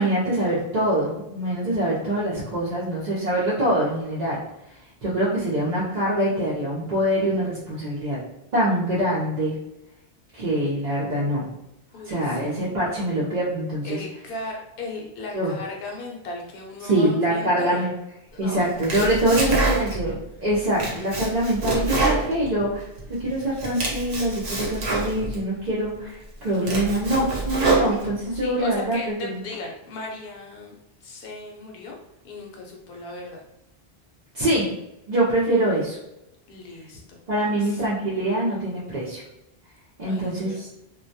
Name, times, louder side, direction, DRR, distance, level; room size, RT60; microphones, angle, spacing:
voice 1, 0.0-4.4 5.0-8.2 8.5-9.5 10.3-11.5 12.0-14.0 15.3-15.5 16.8-17.9 18.4-22.9 23.2-29.4 34.3-34.7 35.1-36.0 37.3-39.2 40.0-40.7, right 1 dB, 50° right, -7 dB, 0.6 m, -24 dB
voice 2, 11.9-12.6 13.8-17.9 18.3-18.7 19.3-19.9 28.3-30.7 31.0-32.0 32.2-33.4 36.5-37.8 40.0-40.7, left 3 dB, 65° left, 0 dB, 0.8 m, -37 dB
Domestic sounds home sounds, 18.6-20.1 20.5-23.0 23.4-25.4 25.9-26.0 26.4-28.4, right 2 dB, 75° right, 0.9 m, -26 dB
2.2 x 2.1 x 2.6 m, 0.87 s
omnidirectional pair, 1.1 m